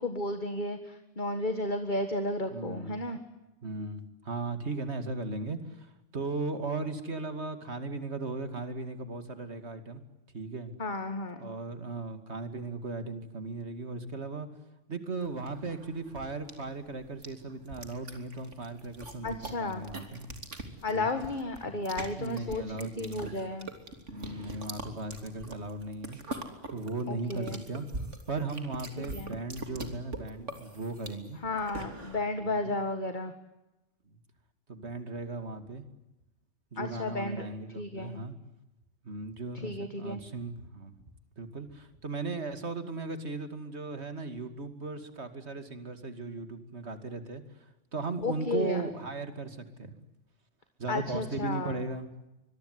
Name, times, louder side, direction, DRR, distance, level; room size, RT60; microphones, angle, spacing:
voice 1, 0.0-3.2 10.8-11.5 19.2-19.8 20.8-23.7 27.1-27.6 29.1-29.4 31.4-33.3 36.8-37.5 37.8-38.2 39.6-40.2 48.2-48.8 50.9-51.7, left 2 dB, 40° left, 8 dB, 1.9 m, -33 dB
voice 2, 2.5-3.0 3.6-10.0 10.3-10.7 11.4-14.5 14.9-20.3 20.9-21.1 21.6-21.8 22.2-23.4 24.1-26.2 26.7-28.0 28.3-31.4 32.4-32.8 34.7-35.8 36.7-38.3 39.0-40.9 41.4-47.4 47.9-49.9 50.8-52.1, right 3 dB, 65° right, 9 dB, 2.7 m, -37 dB
sound 1, 15.2-32.2, right 2 dB, 85° right, 3.6 m, -43 dB
25.0 x 22.5 x 9.7 m, 0.98 s
omnidirectional pair, 1.2 m